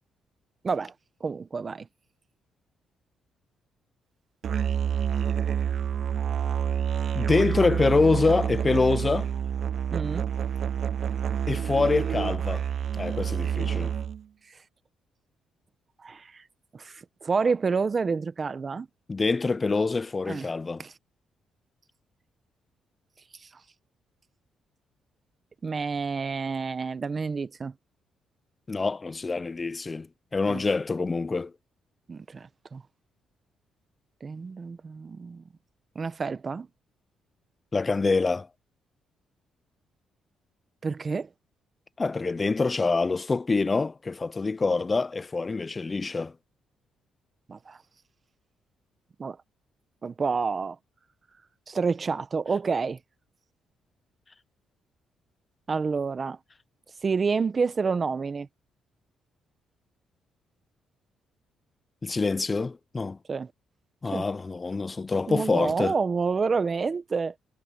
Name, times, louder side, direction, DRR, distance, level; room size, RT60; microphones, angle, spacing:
voice 1, 1.2-1.9 9.9-10.3 14.5-14.6 16.0-16.4 16.7-18.9 20.3-20.5 20.8-20.9 23.4-23.5 25.6-27.7 30.5-30.6 32.1-32.8 34.2-35.4 35.9-36.7 40.8-41.3 47.5-47.8 49.2-49.4 50.0-50.8 51.7-53.0 55.7-56.4 57.0-58.5 63.3-63.5 64.1-64.3 65.3-67.3, right 5 dB, 35° right, 1.1 m, -29 dB
Musical instrument, 4.4-14.2, right 8 dB, 55° right, 0.3 m, -28 dB
voice 2, 7.1-9.3 11.5-12.6 13.0-13.9 19.1-20.8 28.7-30.1 30.3-31.5 37.7-38.5 42.0-46.3 62.0-63.2 64.0-65.9, left 3 dB, 25° left, 0.5 m, -25 dB
cardioid pair, 90°, 0 cm